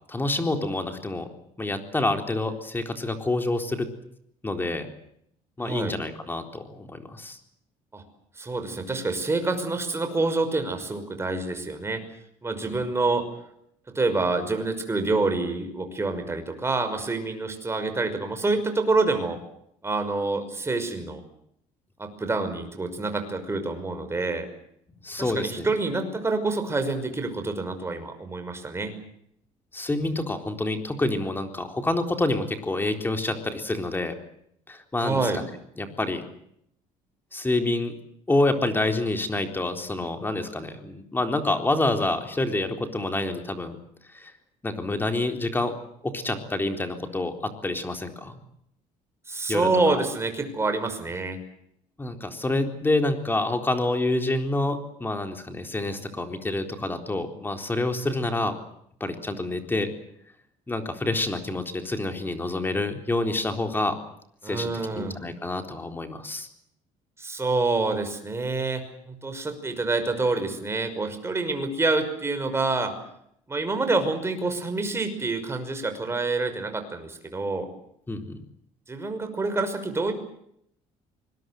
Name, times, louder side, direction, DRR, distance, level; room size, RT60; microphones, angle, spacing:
voice 1, 0.1-1.3 1.6-3.9 4.4-4.9 5.6-7.4 12.6-12.8 25.0-25.7 29.7-34.1 34.7-35.4 35.8-36.2 37.3-38.0 38.3-43.8 44.1-44.3 44.6-45.8 46.0-48.4 49.5-49.7 52.0-58.5 59.0-59.9 60.7-64.0 64.4-66.5 78.1-78.4, left 2 dB, 15° left, 5 dB, 4.0 m, -27 dB
voice 2, 5.6-6.0 7.9-8.0 8.4-12.0 12.4-13.2 13.9-19.4 19.8-21.2 22.0-24.5 25.2-28.9 35.0-35.4 49.3-51.4 64.4-65.2 67.2-72.9 73.5-77.7 78.9-80.1, right 3 dB, 20° right, 7 dB, 5.7 m, -27 dB
25.5 x 21.5 x 7.9 m, 0.72 s
cardioid pair, 110°, 14 cm